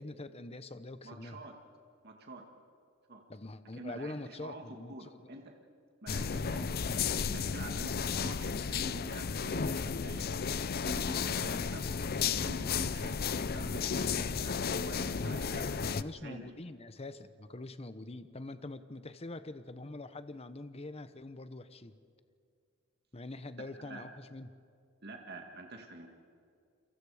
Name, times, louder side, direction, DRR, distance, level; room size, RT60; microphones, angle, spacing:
voice 1, 0.0-1.5 3.3-5.4 15.5-22.0 23.1-24.5, left 2 dB, 30° left, 12 dB, 0.9 m, -44 dB
voice 2, 1.0-1.5 2.0-2.4 3.1-3.2 3.8-5.4 6.0-7.9 8.2-10.4 10.8-11.9 12.2-13.2 13.5-15.9 16.2-16.5 23.6-24.0 25.0-26.1, right 2 dB, 55° right, 3 dB, 2.0 m, -47 dB
sound 1, 6.1-16.0, left 6 dB, 50° left, 0.5 m, -33 dB
29.5 x 23.5 x 5.0 m, 2.3 s
head